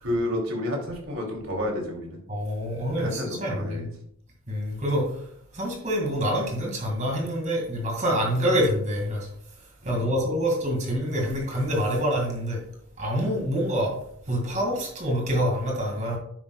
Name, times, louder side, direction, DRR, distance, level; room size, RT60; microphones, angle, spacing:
voice 1, 0.0-2.2 2.9-3.9 9.8-10.4, left 1 dB, 90° right, 0 dB, 2.8 m, -30 dB
voice 2, 2.3-3.9 4.5-5.2 5.5-9.3 9.8-12.6 13.0-14.0 14.3-16.2, equal, 35° right, 0 dB, 2.0 m, -26 dB
10.0 x 8.5 x 2.3 m, 0.66 s
head